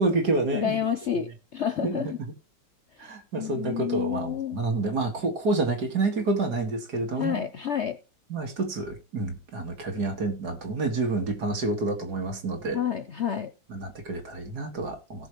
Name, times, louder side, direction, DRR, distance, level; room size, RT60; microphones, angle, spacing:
voice 1, 0.0-0.8 1.8-2.1 3.0-7.5 8.3-12.8 13.7-15.3, right 3 dB, 60° right, 2.6 m, -28 dB
voice 2, 0.5-2.2 3.0-4.6 7.2-8.0 12.7-13.5, left 9 dB, 60° left, 0.7 m, -29 dB
17.5 x 6.6 x 3.1 m
omnidirectional pair, 2.0 m